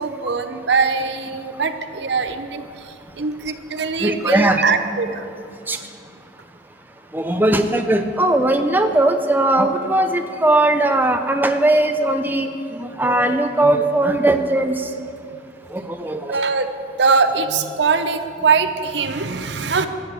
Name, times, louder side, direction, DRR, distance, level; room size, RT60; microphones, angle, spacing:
voice 1, 0.0-5.3 16.3-16.7 17.0-19.9, right 4 dB, 70° right, 8 dB, 0.8 m, -21 dB
voice 2, 2.8-3.2 4.0-4.6 5.5-6.4 7.1-15.0 15.7-16.4, right 1 dB, 10° right, 6 dB, 0.5 m, -19 dB
13.5 x 7.8 x 8.1 m, 2.5 s
head